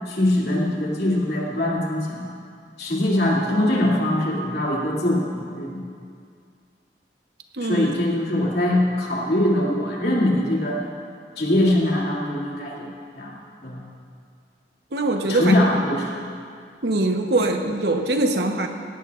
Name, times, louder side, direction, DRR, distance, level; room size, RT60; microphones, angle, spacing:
voice 1, 0.1-2.3 2.8-5.8 7.6-10.8 11.4-12.9 13.1-13.3 13.6-13.8 15.3-16.2, left 1 dB, 65° left, -4 dB, 2.7 m, -22 dB
voice 2, 7.6-7.9 14.9-15.6 16.8-18.7, right 2 dB, 70° right, 4 dB, 1.0 m, -22 dB
17.5 x 17.5 x 2.5 m, 2.3 s
head